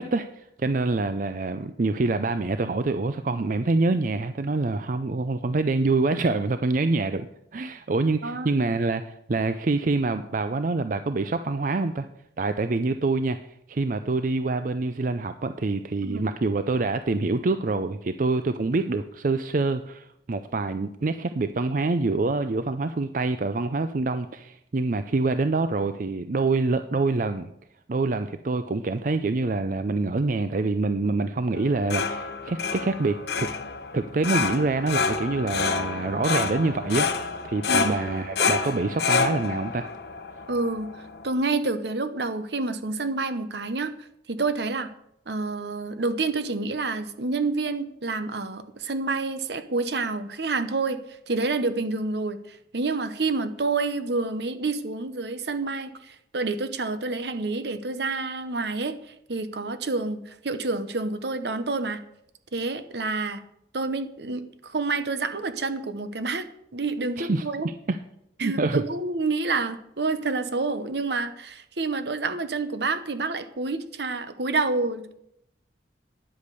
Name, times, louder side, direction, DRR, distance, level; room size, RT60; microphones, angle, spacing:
voice 1, 0.0-7.3 7.5-12.1 12.4-13.4 13.7-27.5 27.9-33.5 33.9-37.1 37.4-39.9 67.2-68.0 68.4-68.8, right 3 dB, 45° right, 10 dB, 0.5 m, -26 dB
voice 2, 8.2-8.8 16.0-16.3 37.7-38.0 40.5-43.9 44.3-44.9 45.3-51.0 51.3-62.0 62.5-63.4 63.7-67.7 68.4-75.1, right 3 dB, 70° right, 11 dB, 1.0 m, -28 dB
sound 1, 31.5-41.3, left 5 dB, 65° left, 0.8 m, -28 dB
9.9 x 8.3 x 6.8 m, 0.77 s
head